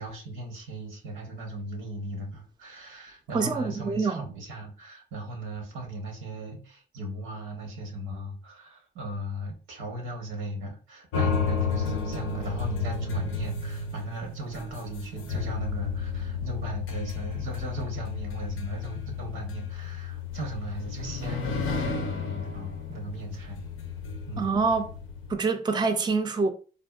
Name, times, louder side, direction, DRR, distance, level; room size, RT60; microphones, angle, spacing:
voice 1, 0.0-23.6 24.3-24.5, right 1 dB, 90° right, 0.8 m, -37 dB
voice 2, 3.3-4.2 24.4-24.9 25.3-26.5, right 4 dB, 20° right, 0.4 m, -25 dB
sound 1, 11.1-25.3, left 5 dB, 85° left, 0.5 m, -32 dB
3.4 x 2.2 x 2.3 m
cardioid pair, 65°, 20 cm